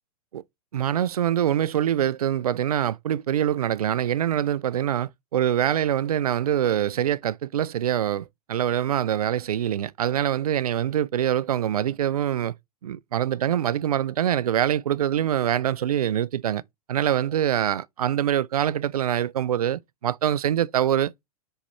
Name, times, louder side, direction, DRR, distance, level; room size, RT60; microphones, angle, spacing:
voice 1, 0.7-12.5 12.8-16.6 16.9-21.3, right 10 dB, 75° right, 0.4 m, -24 dB
5.5 x 4.6 x 4.2 m
hypercardioid pair, 110°, 19 cm